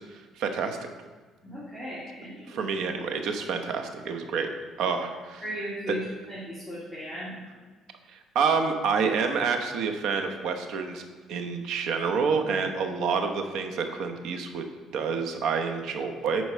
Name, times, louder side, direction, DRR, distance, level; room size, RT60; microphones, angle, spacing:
voice 1, 0.4-0.8 2.5-4.5 4.8-5.4 8.3-11.0 11.3-14.6 14.9-16.4, right 5 dB, 75° right, 6 dB, 1.0 m, -28 dB
voice 2, 1.4-2.6 5.4-6.0 6.3-7.3, equal, ahead, -11 dB, 2.5 m, -36 dB
9.4 x 4.7 x 5.6 m, 1.3 s
cardioid pair, 115°, 0 cm